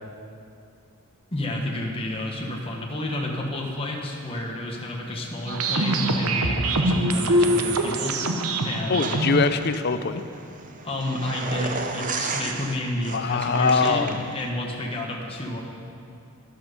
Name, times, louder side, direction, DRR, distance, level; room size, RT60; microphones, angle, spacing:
voice 1, 1.3-8.2 8.6-9.1 10.8-14.0 14.3-15.6, left 1 dB, 25° left, -1 dB, 1.3 m, -30 dB
sound 1, 5.5-9.4, right 1 dB, 80° right, 0.9 m, -23 dB
voice 2, 8.9-10.2 13.1-14.2, left 4 dB, 45° left, 10 dB, 0.5 m, -23 dB
sound 2, 9.0-14.5, right 4 dB, 35° right, 0.8 m, -34 dB
13.0 x 11.5 x 5.3 m, 2.5 s
head